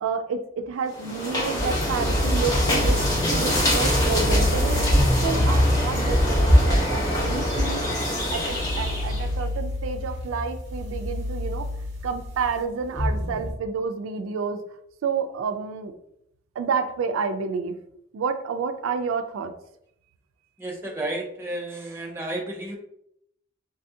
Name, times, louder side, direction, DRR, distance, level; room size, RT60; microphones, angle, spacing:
voice 1, 0.0-3.0 3.3-7.9 8.3-11.7 12.0-14.6 15.0-15.9 16.6-17.8 18.1-19.5, right 5 dB, 90° right, 8 dB, 0.3 m, -29 dB
sound 1, 0.9-9.3, left 1 dB, 20° left, 0.9 m, -24 dB
sound 2, 1.6-13.5, left 1 dB, 65° right, 1.0 m, -27 dB
voice 2, 20.6-22.8, right 1 dB, 10° right, -1 dB, 0.4 m, -32 dB
3.4 x 2.3 x 2.6 m, 0.75 s
head